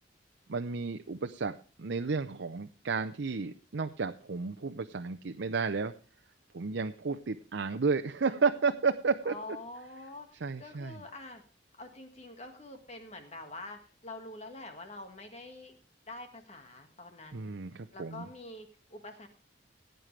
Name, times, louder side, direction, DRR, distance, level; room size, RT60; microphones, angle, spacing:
voice 1, 0.5-5.9 6.5-9.3 10.4-11.0 17.3-18.3, right 4 dB, 75° right, 7 dB, 0.6 m, -32 dB
voice 2, 9.2-11.4 11.8-15.7 16.1-17.5 17.9-19.3, left 2 dB, 35° left, 5 dB, 1.7 m, -46 dB
17.5 x 9.1 x 3.3 m, 0.36 s
head